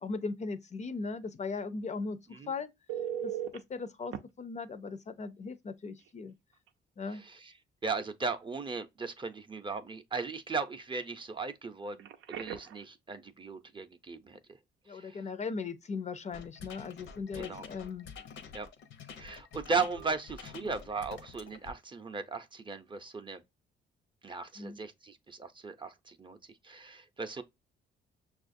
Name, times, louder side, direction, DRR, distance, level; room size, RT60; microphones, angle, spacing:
voice 1, 0.0-2.7 3.2-6.3 7.0-7.2 14.9-18.1 20.6-20.8 24.6-24.8, left 4 dB, 35° left, 0.4 m, -38 dB
Telephone, 2.9-3.6 4.1-4.2 6.0-6.1 6.5-6.7 12.0-12.8 19.9-20.1, right 10 dB, 85° right, 0.5 m, -38 dB
voice 2, 7.1-7.5 7.8-14.4 14.9-15.2 17.4-17.6 18.5-18.7 19.2-23.4 24.2-26.4 26.6-27.4, right 4 dB, 25° right, 0.5 m, -37 dB
sound 1, 16.3-21.7, left 6 dB, 75° left, 0.7 m, -48 dB
6.1 x 2.4 x 2.5 m
cardioid pair, 90°, 20 cm